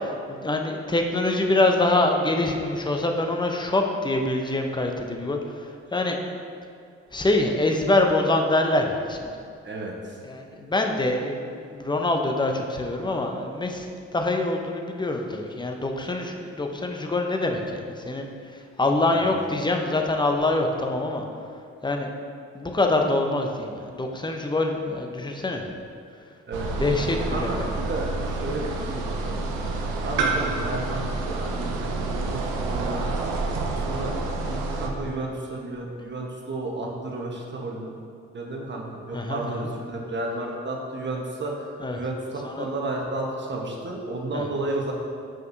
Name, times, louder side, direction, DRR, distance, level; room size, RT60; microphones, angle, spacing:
voice 1, 0.3-6.2 7.1-9.4 10.2-21.2 21.8-22.1 22.5-25.6 26.8-27.5 39.1-39.5 41.8-42.0 42.4-42.7 44.3-44.5, left 2 dB, 15° left, 3 dB, 0.7 m, -25 dB
voice 2, 9.6-10.2 19.1-19.3 26.5-26.9 27.3-29.4 29.7-33.1 33.9-38.0 38.3-45.0, right 2 dB, 35° right, -1 dB, 1.2 m, -32 dB
sound 1, 26.5-34.9, right 3 dB, 80° right, 0.6 m, -28 dB
7.5 x 5.3 x 2.7 m, 2.3 s
hypercardioid pair, 45°, 33 cm